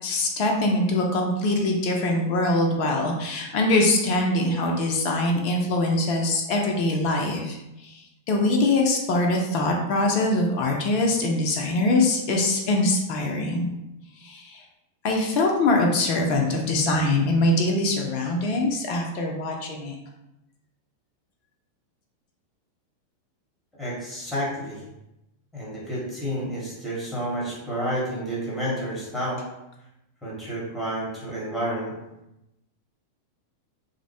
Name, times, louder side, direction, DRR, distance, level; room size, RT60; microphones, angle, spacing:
voice 1, 0.0-13.7 14.2-14.6 15.0-20.0, left 2 dB, 45° left, 1 dB, 0.4 m, -23 dB
voice 2, 23.8-24.8 25.5-29.4 30.2-31.9, equal, 5° left, -6 dB, 0.9 m, -30 dB
2.5 x 2.0 x 2.6 m, 0.91 s
figure-of-eight pair, 90°, 0 cm